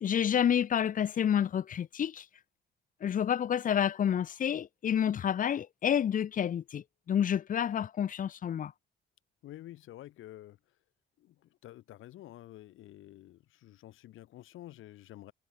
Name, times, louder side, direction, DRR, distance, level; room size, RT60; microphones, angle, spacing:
voice 1, 0.0-2.2 3.0-8.7, left 9 dB, 40° left, 0.5 m, -29 dB
voice 2, 9.4-10.8 11.2-15.3, left 14 dB, 85° left, 5.2 m, -50 dB
cardioid pair, 90°, 20 cm